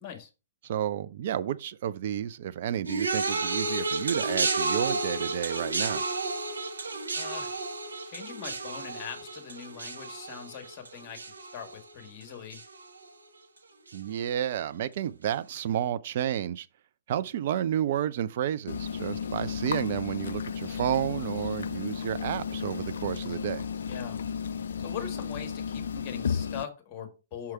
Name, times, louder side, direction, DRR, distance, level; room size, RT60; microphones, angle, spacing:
voice 1, 0.6-6.0 13.9-16.7 17.1-23.7, right 10 dB, 50° right, 0.5 m, -31 dB
sound 1, 2.9-12.2 12.5-13.0 13.9-14.0, right 3 dB, 75° right, 1.0 m, -32 dB
voice 2, 7.1-7.5 8.0-12.6 23.9-24.2 24.8-27.5, left 8 dB, 30° left, 1.8 m, -41 dB
sound 2, 18.7-26.6, left 7 dB, 60° left, 0.4 m, -34 dB
5.8 x 4.8 x 4.4 m
figure-of-eight pair, 115°, 0 cm